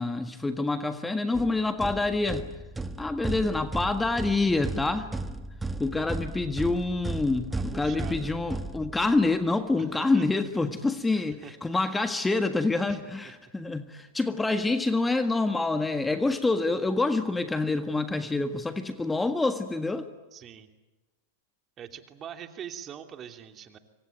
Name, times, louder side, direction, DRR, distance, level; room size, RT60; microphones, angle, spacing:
voice 1, 0.0-2.5 3.0-5.1 5.8-20.1, left 3 dB, 10° left, 8 dB, 1.6 m, -27 dB
sound 1, 1.3-9.3, right 2 dB, 10° right, 1.6 m, -35 dB
voice 2, 7.5-8.4 9.8-10.2 11.1-11.5 12.9-13.0 20.3-20.7 21.8-23.8, right 9 dB, 30° right, 6 dB, 2.8 m, -43 dB
25.5 x 25.0 x 9.2 m, 1.2 s
hypercardioid pair, 110°, 0 cm